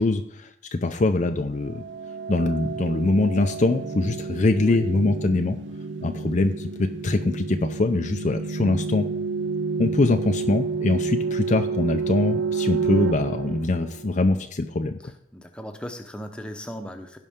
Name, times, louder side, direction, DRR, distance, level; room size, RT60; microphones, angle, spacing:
voice 1, 0.0-1.8 2.3-5.6 6.0-9.1 9.8-15.1, left 2 dB, 35° left, 6 dB, 0.5 m, -23 dB
sound 1, 1.6-14.4, right 5 dB, 65° right, 0.5 m, -30 dB
voice 2, 4.6-4.9 15.0-17.2, equal, 5° left, 4 dB, 0.9 m, -38 dB
16.5 x 5.5 x 3.6 m, 0.76 s
head